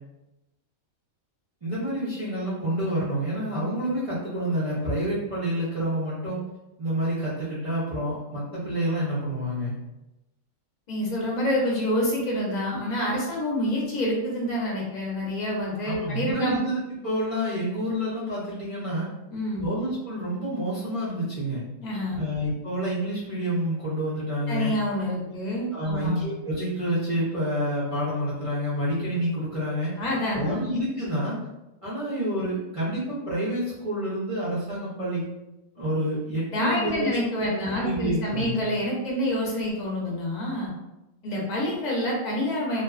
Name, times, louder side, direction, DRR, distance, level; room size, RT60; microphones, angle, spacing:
voice 1, 1.6-6.4 6.8-9.7 15.8-19.1 19.6-21.6 22.1-24.7 25.3-25.4 25.7-29.9 30.4-31.4 31.8-35.2 35.7-37.2 37.4-38.6, equal, 45° right, -9 dB, 0.4 m, -28 dB
voice 2, 10.9-16.6 19.3-19.7 21.8-22.3 24.5-26.2 30.0-30.7 36.5-40.7 41.2-42.8, left 1 dB, 40° left, -3 dB, 0.6 m, -27 dB
2.5 x 2.3 x 2.3 m, 0.96 s
omnidirectional pair, 1.5 m